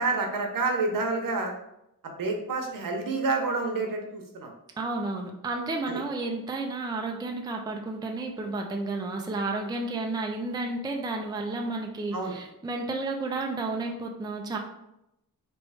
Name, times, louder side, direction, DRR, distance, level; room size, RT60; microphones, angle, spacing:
voice 1, 0.0-1.5 2.0-4.5 5.9-6.0 12.1-12.3, right 3 dB, 70° right, 3 dB, 0.9 m, -28 dB
voice 2, 4.8-14.6, right 2 dB, 10° right, 2 dB, 0.4 m, -32 dB
3.2 x 3.0 x 4.7 m, 0.84 s
wide cardioid pair, 145°, 35 cm